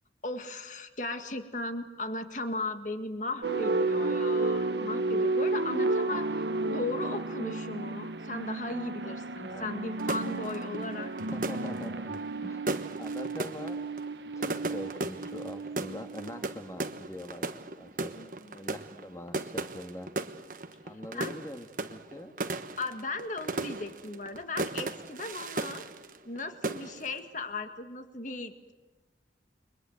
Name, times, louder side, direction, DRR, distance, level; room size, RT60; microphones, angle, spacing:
voice 1, 0.2-11.1 18.2-18.6 21.1-21.4 22.8-25.9 26.3-28.7, left 2 dB, 45° left, 7 dB, 1.9 m, -37 dB
sound 1, 3.4-16.8, right 2 dB, 75° right, 1.2 m, -32 dB
voice 2, 9.4-9.8 11.3-12.7 13.0-13.8 14.4-17.5 17.8-18.1 18.5-20.1 20.8-22.3, equal, 15° left, 5 dB, 2.2 m, -43 dB
sound 2, 10.0-26.4 26.6-27.2, right 2 dB, 50° right, 1.2 m, -37 dB
29.5 x 23.0 x 8.0 m, 1.2 s
head